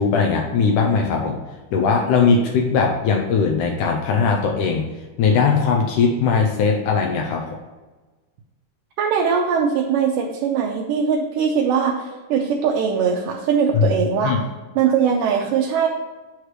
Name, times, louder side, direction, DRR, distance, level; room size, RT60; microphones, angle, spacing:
voice 1, 0.0-1.4 1.7-4.9 5.2-7.6 13.7-13.9 14.2-14.4, left 5 dB, 80° left, 1 dB, 2.1 m, -19 dB
voice 2, 9.0-14.4 14.8-15.9, right 6 dB, 85° right, -1 dB, 2.3 m, -21 dB
8.0 x 3.2 x 6.0 m, 1.2 s
omnidirectional pair, 3.7 m